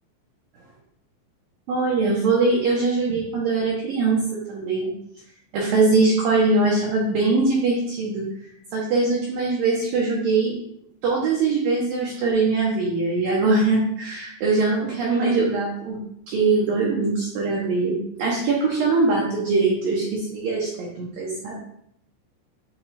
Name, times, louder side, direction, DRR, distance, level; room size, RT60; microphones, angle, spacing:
voice 1, 1.7-4.2 4.5-4.9 5.5-8.3 8.7-10.5 11.0-16.0 16.3-21.6, right 3 dB, 75° right, -3 dB, 2.1 m, -22 dB
9.3 x 3.6 x 3.3 m, 0.73 s
omnidirectional pair, 5.4 m